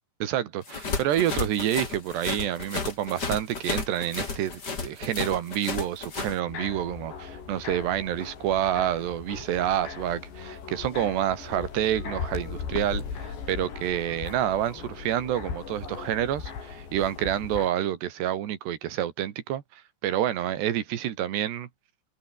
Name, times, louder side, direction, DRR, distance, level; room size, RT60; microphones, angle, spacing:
voice 1, 0.2-21.7, right 11 dB, 75° right, 4.0 m, -28 dB
sound 1, 0.7-6.4, left 4 dB, 25° left, 3.2 m, -33 dB
sound 2, 6.5-17.7, left 6 dB, 80° left, 7.4 m, -38 dB
open air
omnidirectional pair, 4.9 m